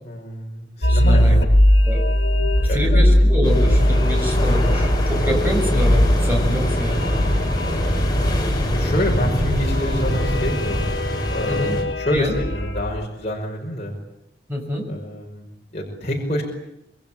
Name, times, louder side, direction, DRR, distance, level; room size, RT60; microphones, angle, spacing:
voice 1, 0.0-1.5 2.7-3.1 8.7-10.8 11.3-13.9 14.9-16.4, equal, 40° left, -1 dB, 5.5 m, -27 dB
sound 1, 0.8-13.0, left 1 dB, 85° left, 1.6 m, -20 dB
voice 2, 0.9-1.4 1.8-2.0 2.4-7.1 11.4-11.8 12.1-12.3 14.5-14.9, equal, 10° right, 1 dB, 6.9 m, -26 dB
sound 2, 3.4-11.8, equal, 25° left, 6.2 m, -24 dB
27.5 x 22.0 x 8.8 m, 0.84 s
head